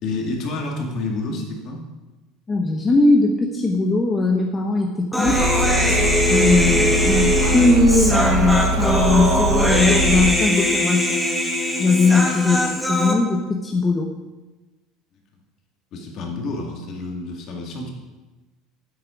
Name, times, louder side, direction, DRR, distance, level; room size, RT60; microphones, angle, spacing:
voice 1, 0.0-1.8 15.9-17.9, left 2 dB, 50° left, 1 dB, 2.3 m, -29 dB
voice 2, 2.5-5.5 6.3-11.3 11.8-14.1, left 3 dB, 20° left, 1 dB, 0.9 m, -19 dB
Human voice, 5.1-13.1, left 1 dB, ahead, 1.4 m, -21 dB
sound 1, 5.2-10.3, right 2 dB, 85° right, 1.0 m, -22 dB
9.6 x 8.3 x 5.2 m, 1.2 s
cardioid pair, 135°, 0 cm